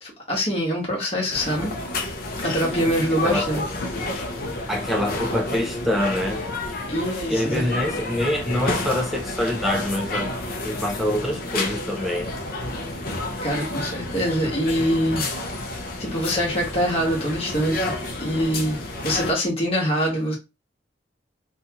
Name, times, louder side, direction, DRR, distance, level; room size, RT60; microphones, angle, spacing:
voice 1, 0.0-1.7 2.4-3.9 6.9-7.7 13.4-15.2 16.0-17.9 18.2-18.8 19.0-20.3, equal, 30° left, 1.0 m, -24 dB
sound 1, 1.3-19.3, left 2 dB, 50° left, 0.5 m, -30 dB
voice 2, 4.7-6.4 7.3-10.3 10.6-12.3, left 1 dB, ahead, 0.3 m, -25 dB
2.7 x 2.3 x 2.8 m
head